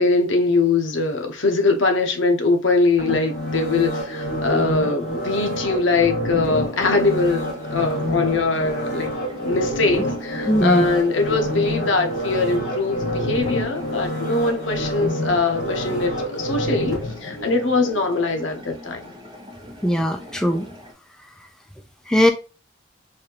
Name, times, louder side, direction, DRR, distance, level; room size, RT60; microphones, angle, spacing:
voice 1, 0.0-9.1 9.4-19.1, left 3 dB, 80° left, 0.8 m, -22 dB
sound 1, 3.0-18.0 18.5-18.6, equal, 50° left, 1.3 m, -27 dB
sound 2, 6.6-20.9, left 1 dB, 25° right, 0.9 m, -42 dB
voice 2, 10.5-10.9 19.8-20.7 22.1-22.3, equal, 5° left, 0.3 m, -19 dB
4.1 x 2.6 x 2.8 m
head